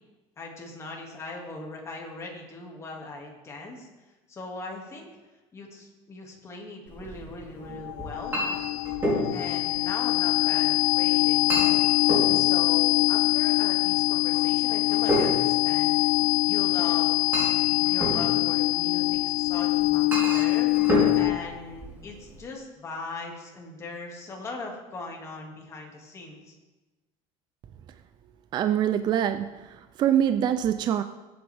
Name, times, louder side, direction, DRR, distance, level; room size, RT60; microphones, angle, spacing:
voice 1, 0.4-3.9 4.3-5.1 5.5-8.3 9.3-11.9 12.3-16.0 16.4-17.1 17.7-26.5, left 2 dB, 20° left, 0 dB, 2.3 m, -40 dB
Chink clink, 6.9-22.4, equal, 15° right, 3.5 m, -32 dB
sound 1, 7.7-21.6, left 23 dB, 85° left, 0.4 m, -24 dB
voice 2, 28.5-31.0, right 10 dB, 35° right, 10 dB, 0.5 m, -24 dB
20.0 x 8.6 x 3.5 m, 1.1 s
cardioid pair, 155°, 13 cm